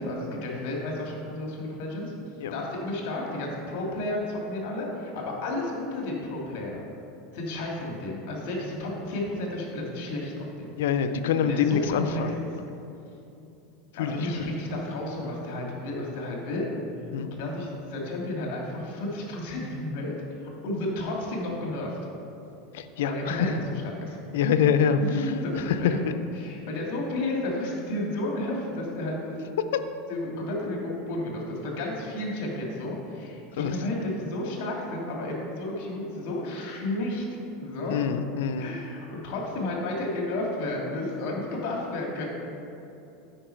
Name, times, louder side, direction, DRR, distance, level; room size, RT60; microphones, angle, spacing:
voice 1, 0.0-2.1 2.5-6.8 7.3-10.8 11.4-12.2 14.0-16.6 17.2-20.1 20.4-22.0 23.0-23.5 23.8-24.2 25.0-26.1 26.4-29.4 30.1-37.2 37.6-38.0 38.6-42.3, left 1 dB, 65° left, -1 dB, 1.9 m, -32 dB
voice 2, 10.8-12.4 13.9-14.6 17.1-17.3 22.7-23.5 24.3-25.9 29.7-29.8 33.5-33.8 37.9-38.7, left 7 dB, 85° left, 10 dB, 0.5 m, -25 dB
8.9 x 5.2 x 4.4 m, 2.8 s
supercardioid pair, 135°, 0 cm